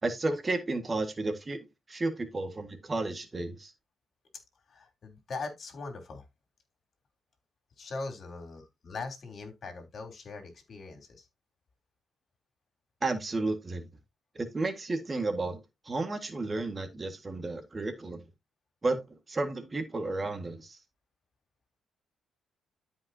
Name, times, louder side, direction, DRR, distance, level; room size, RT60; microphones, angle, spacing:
voice 1, 0.0-3.7 13.0-13.9 14.4-18.2 18.8-19.0 19.3-20.8, right 2 dB, 25° right, 1.8 m, -32 dB
voice 2, 4.7-6.2 7.8-11.3, left 3 dB, 50° left, 3.4 m, -41 dB
13.0 x 5.3 x 2.8 m
cardioid pair, 90°, 0 cm